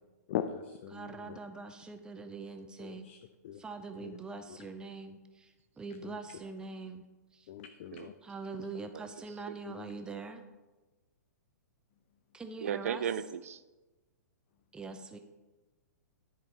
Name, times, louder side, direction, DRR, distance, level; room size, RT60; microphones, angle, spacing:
voice 1, 0.3-1.4 2.8-3.2 3.4-3.6 4.0-4.2 4.5-4.6 6.0-6.2 7.5-8.1 9.7-9.9, left 10 dB, 40° left, 8 dB, 0.5 m, -40 dB
voice 2, 0.9-3.1 3.5-7.0 7.3-7.5 8.2-10.4 12.3-13.0 14.7-15.2, right 4 dB, 10° right, 6 dB, 0.6 m, -43 dB
voice 3, 12.6-13.6, right 8 dB, 55° right, 14 dB, 0.4 m, -35 dB
10.5 x 5.2 x 4.2 m, 1.2 s
figure-of-eight pair, 115°, 9 cm